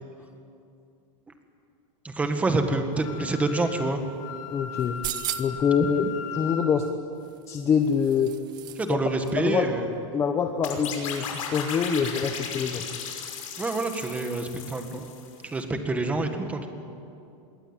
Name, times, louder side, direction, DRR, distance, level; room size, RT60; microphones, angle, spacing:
voice 1, 2.0-4.0 8.8-9.9 13.6-15.1 15.4-16.7, right 2 dB, 10° right, 6 dB, 1.7 m, -27 dB
Wind instrument woodwind instrument, 2.9-6.7, left 8 dB, 75° left, 4.1 m, -37 dB
voice 2, 4.5-5.0 5.4-6.9 7.5-8.3 8.9-9.0 9.4-9.7 10.1-12.9, left 6 dB, 15° left, 5 dB, 0.9 m, -25 dB
sound 1, 4.8-5.7 7.2-8.9 9.2-9.3, right 13 dB, 25° right, 0.8 m, -36 dB
sound 2, 10.6-15.4, left 6 dB, 90° left, 5.9 m, -36 dB
26.5 x 22.0 x 9.0 m, 2.6 s
supercardioid pair, 175°, 17 cm